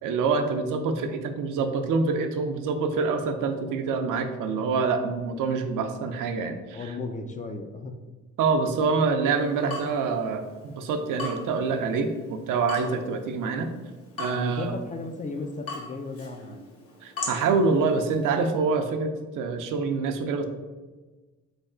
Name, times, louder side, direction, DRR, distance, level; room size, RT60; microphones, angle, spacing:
voice 1, 0.0-6.9 8.4-13.7 14.2-14.7 17.0-20.4, right 4 dB, 75° right, 6 dB, 0.5 m, -26 dB
voice 2, 6.7-8.0 14.3-16.6, left 3 dB, 25° left, 5 dB, 0.3 m, -35 dB
Water tap faucet / Drip, 9.3-18.6, left 3 dB, 45° left, 1.1 m, -41 dB
3.3 x 2.3 x 3.7 m, 1.2 s
supercardioid pair, 65°, 32 cm